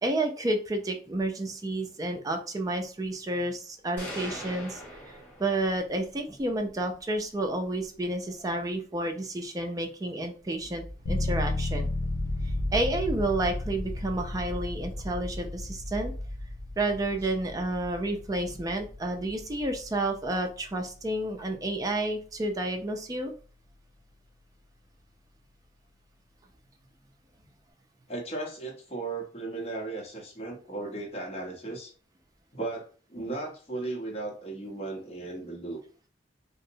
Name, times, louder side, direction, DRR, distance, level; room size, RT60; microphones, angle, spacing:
voice 1, 0.0-4.8 5.1-11.9 12.7-16.1 16.8-23.3, right 1 dB, 20° right, 4 dB, 0.4 m, -30 dB
sound 1, 4.0-5.9, equal, 10° left, 1.0 m, -40 dB
sound 2, 10.6-20.4, left 1 dB, 50° right, 0.8 m, -40 dB
sound 3, 11.1-21.6, left 2 dB, 75° left, 0.4 m, -35 dB
voice 2, 28.1-31.9 32.5-35.8, right 2 dB, 35° left, -1 dB, 0.7 m, -36 dB
2.7 x 2.0 x 2.6 m, 0.39 s
head